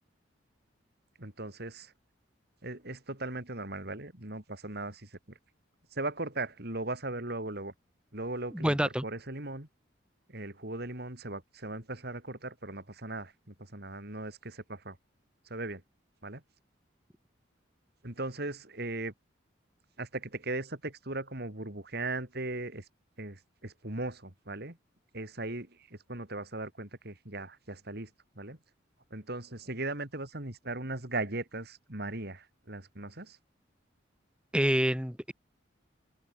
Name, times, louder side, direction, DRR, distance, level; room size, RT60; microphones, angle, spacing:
voice 1, 1.2-1.9 2.6-5.1 5.9-7.7 8.1-9.7 10.3-15.0 15.5-15.8 16.2-16.4 18.0-19.1 20.0-22.8 23.2-24.8 25.1-28.1 28.4-28.6 29.1-33.4, right 2 dB, 50° right, 3.5 m, -38 dB
voice 2, 8.5-9.0 34.5-35.3, equal, 5° right, 1.9 m, -27 dB
open air
head